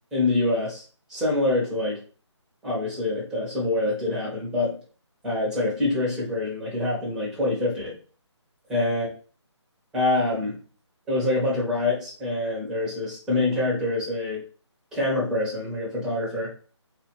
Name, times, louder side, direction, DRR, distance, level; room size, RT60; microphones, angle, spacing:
voice 1, 0.1-0.8 1.1-2.0 2.6-4.8 5.2-7.9 8.7-9.1 9.9-10.5 11.1-14.4 14.9-16.5, left 2 dB, 5° right, -6 dB, 0.9 m, -25 dB
4.0 x 2.5 x 2.9 m, 0.38 s
figure-of-eight pair, 150°, 15 cm